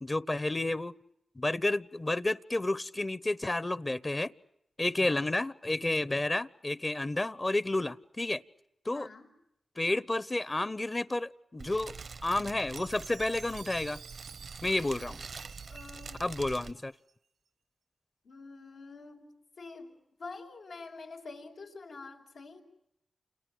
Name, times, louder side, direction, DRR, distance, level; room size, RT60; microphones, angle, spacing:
voice 1, 0.0-0.9 1.3-4.3 4.8-8.4 8.8-9.1 9.8-11.9 12.2-14.0 14.6-15.2 16.2-16.9, left 2 dB, 30° left, 18 dB, 1.0 m, -31 dB
voice 2, 8.9-9.3 15.7-16.3 18.2-19.9 20.2-22.6, left 3 dB, 90° left, -1 dB, 5.8 m, -47 dB
Fire, 11.6-16.7, right 5 dB, 70° right, 1.0 m, -45 dB
Chime, 12.8-17.1, right 6 dB, 90° right, 1.5 m, -51 dB
30.0 x 29.0 x 6.4 m, 0.81 s
cardioid pair, 45°, 0 cm